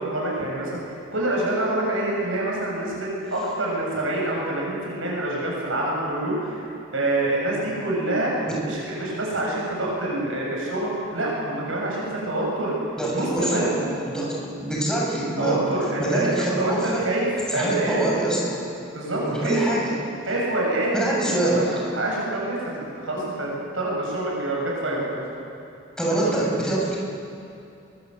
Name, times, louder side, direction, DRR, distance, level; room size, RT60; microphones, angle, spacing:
voice 1, 0.0-6.6 6.9-8.3 8.6-12.8 13.1-13.7 15.4-18.0 18.9-19.8 20.3-21.6 21.9-22.6 23.0-25.2, right 1 dB, 75° right, -3 dB, 8.0 m, -26 dB
voice 2, 13.0-15.6 16.0-17.0 17.5-18.7 19.2-19.9 20.9-21.7 26.0-27.0, right 1 dB, 5° left, -4 dB, 7.2 m, -25 dB
25.5 x 23.0 x 8.2 m, 2.7 s
head